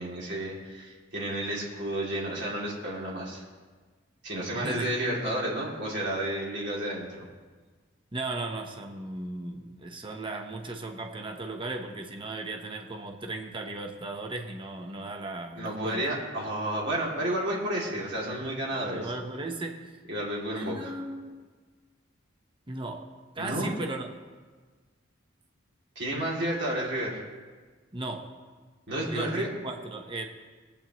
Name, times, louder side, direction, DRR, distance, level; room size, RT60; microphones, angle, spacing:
voice 1, 0.0-3.4 4.2-7.3 15.6-19.1 20.1-20.9 23.4-23.7 26.0-27.2 28.9-29.5, right 1 dB, 60° right, -4 dB, 2.7 m, -31 dB
voice 2, 4.5-5.3 8.1-16.0 18.9-19.9 20.6-21.5 22.7-24.1 27.9-28.3 28.9-30.2, right 2 dB, 25° right, 4 dB, 0.9 m, -36 dB
20.0 x 8.6 x 3.0 m, 1.4 s
head